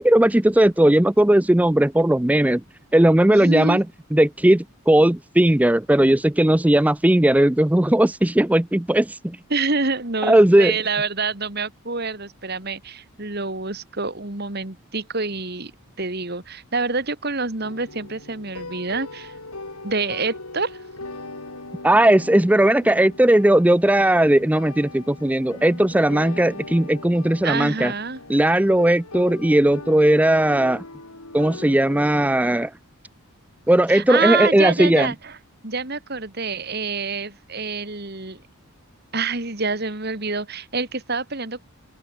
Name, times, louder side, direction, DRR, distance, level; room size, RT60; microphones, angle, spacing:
voice 1, 0.0-2.6 2.9-3.8 4.1-9.4 10.3-10.7 21.8-27.9 28.3-30.8 31.3-32.7 33.7-35.1, right 1 dB, 5° right, 0.4 m, -17 dB
voice 2, 3.3-3.8 9.5-15.7 16.0-19.3 19.8-20.8 27.4-28.2 33.9-35.4 35.6-38.4 39.1-41.6, right 4 dB, 45° right, 2.2 m, -27 dB
sound 1, 17.6-32.5, left 2 dB, 90° left, 6.0 m, -39 dB
open air
head